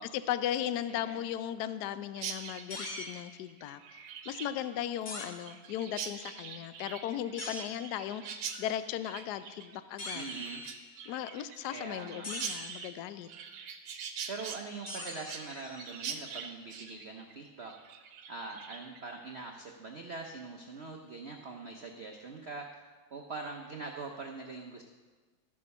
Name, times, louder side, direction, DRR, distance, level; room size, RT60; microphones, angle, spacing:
voice 1, 0.1-10.3 11.1-13.3, left 11 dB, 70° left, 12 dB, 1.0 m, -37 dB
voice 2, 0.9-1.3 10.1-10.6 11.7-12.3 14.3-17.7 18.3-24.8, right 3 dB, 60° right, 2 dB, 0.6 m, -43 dB
Chirp tweet, 2.1-19.0, right 7 dB, 85° right, 1.6 m, -43 dB
sound 1, 2.7-3.1 5.0-5.3 7.4-7.7 10.0-10.9 12.2-12.8 14.9-16.2, left 2 dB, 30° left, 1.1 m, -42 dB
13.0 x 6.7 x 5.4 m, 1.4 s
omnidirectional pair, 2.1 m